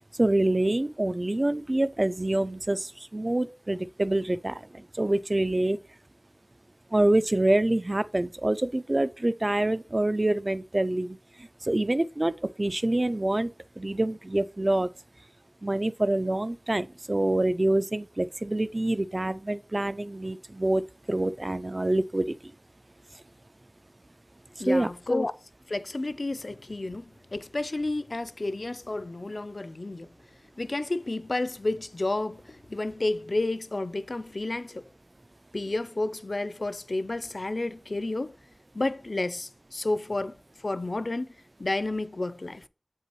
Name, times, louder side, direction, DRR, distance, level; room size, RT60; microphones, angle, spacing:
voice 1, 0.2-5.8 6.9-11.2 11.6-13.5 13.8-14.9 15.6-20.8 21.1-22.3 24.7-24.9, right 1 dB, 45° right, 0.3 m, -26 dB
voice 2, 24.6-25.3 25.7-27.0 27.3-30.1 30.6-34.8 35.5-38.3 38.7-40.3 40.6-41.3 41.6-42.6, left 2 dB, 70° left, 0.4 m, -31 dB
7.5 x 5.4 x 2.9 m
wide cardioid pair, 50°, 0 cm